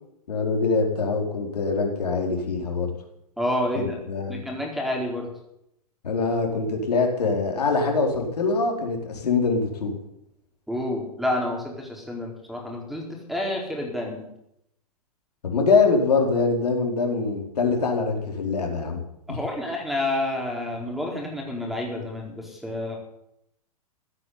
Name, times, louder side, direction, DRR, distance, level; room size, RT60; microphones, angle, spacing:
voice 1, 0.3-2.9 3.7-4.4 6.0-10.0 15.4-19.0 19.3-19.4, left 4 dB, 80° left, 2 dB, 4.5 m, -24 dB
voice 2, 3.4-4.0 4.3-5.3 10.7-13.0 13.3-14.3 19.3-23.0, left 1 dB, ahead, 0 dB, 4.6 m, -29 dB
15.5 x 9.5 x 9.6 m, 0.78 s
hypercardioid pair, 125°, 20 cm